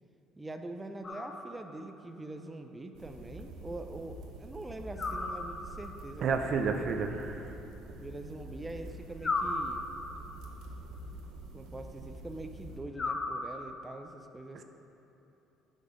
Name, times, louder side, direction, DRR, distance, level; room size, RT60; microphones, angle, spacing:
voice 1, 0.4-6.9 8.0-9.9 11.5-14.6, right 2 dB, 20° right, 6 dB, 0.6 m, -44 dB
sound 1, 1.0-1.9 5.0-6.0 9.2-10.3 13.0-14.0, left 3 dB, 35° left, 0.9 m, -36 dB
sound 2, 2.9-12.8, right 2 dB, 80° right, 0.9 m, -46 dB
voice 2, 6.2-7.6, right 5 dB, 60° right, 6 dB, 0.6 m, -31 dB
9.2 x 5.4 x 5.1 m, 2.9 s
supercardioid pair, 65°, 0 cm